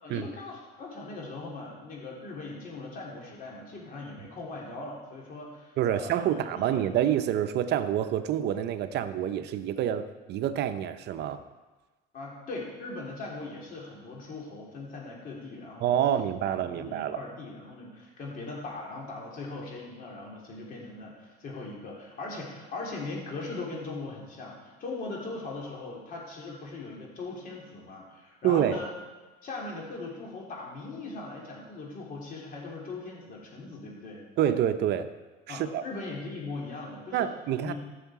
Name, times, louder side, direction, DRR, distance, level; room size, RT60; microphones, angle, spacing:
voice 1, 0.0-6.8 12.1-28.9 29.4-34.2 35.5-37.3 37.6-37.7, left 3 dB, 50° left, -2 dB, 3.2 m, -40 dB
voice 2, 5.8-11.4 15.8-17.2 28.4-28.8 34.4-35.1 35.5-35.8 37.1-37.7, right 10 dB, 65° right, 9 dB, 0.7 m, -27 dB
15.0 x 6.5 x 4.8 m, 1.2 s
cardioid pair, 125°, 19 cm